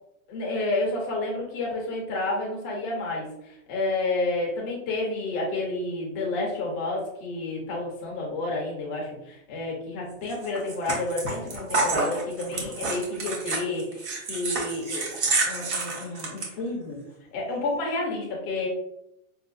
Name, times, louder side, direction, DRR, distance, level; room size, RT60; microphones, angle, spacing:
voice 1, 0.3-17.0 17.3-18.7, left 2 dB, 15° left, -2 dB, 0.3 m, -30 dB
sound 1, 10.3-16.5, right 3 dB, 55° right, 1.0 m, -28 dB
5.5 x 2.2 x 2.4 m, 0.82 s
supercardioid pair, 170°, 41 cm